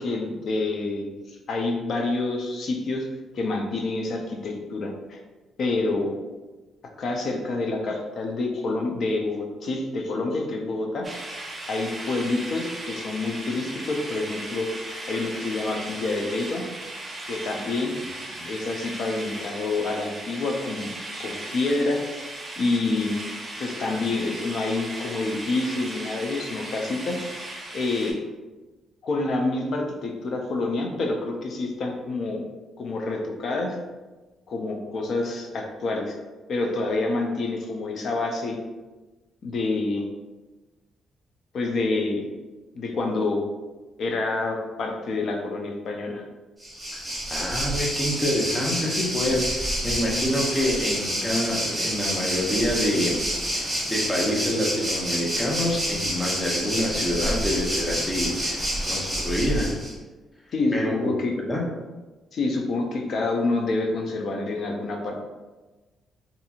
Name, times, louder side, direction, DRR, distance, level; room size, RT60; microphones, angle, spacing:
voice 1, 0.0-3.1 3.3-5.2 5.6-6.1 7.0-11.1 11.7-14.7 15.1-16.7 17.3-17.9 18.5-22.0 22.6-23.2 23.6-27.2 27.7-28.2 29.0-32.4 32.8-33.8 34.5-36.2 36.5-38.6 39.4-40.1 41.5-42.3 42.7-43.4 44.0-46.2 60.5-61.3 62.3-65.2, left 3 dB, 60° left, 2 dB, 0.5 m, -27 dB
sound 1, 11.0-28.1, right 1 dB, 30° right, 0.6 m, -37 dB
Waves surf, 46.6-59.9, equal, 10° right, 1.1 m, -28 dB
voice 2, 47.3-53.2 53.5-59.7 60.7-61.1 61.5-61.6, left 1 dB, 20° left, -3 dB, 0.8 m, -27 dB
2.8 x 2.6 x 2.4 m, 1.2 s
cardioid pair, 90°, 0 cm